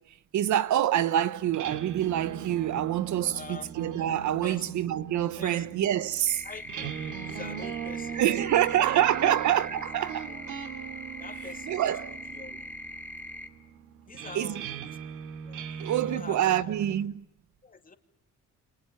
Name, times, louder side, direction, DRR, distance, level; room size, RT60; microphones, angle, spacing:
voice 1, 0.3-6.4 8.2-10.3 11.7-12.2 14.3-14.6 15.8-17.2, right 11 dB, 70° right, 1.3 m, -26 dB
sound 1, 1.4-17.1, right 8 dB, 90° right, 2.5 m, -40 dB
voice 2, 3.2-3.7 4.4-4.7 5.4-5.7 6.4-8.4 8.9-9.4 9.8-9.9 11.2-12.0 12.3-12.6 14.1-15.1 15.4-15.6 16.0-16.7 17.6-18.0, left 4 dB, 30° left, 2.8 m, -45 dB
sound 2, 6.3-13.5, left 1 dB, 5° left, 2.6 m, -42 dB
30.0 x 26.5 x 7.0 m
cardioid pair, 90°, 30 cm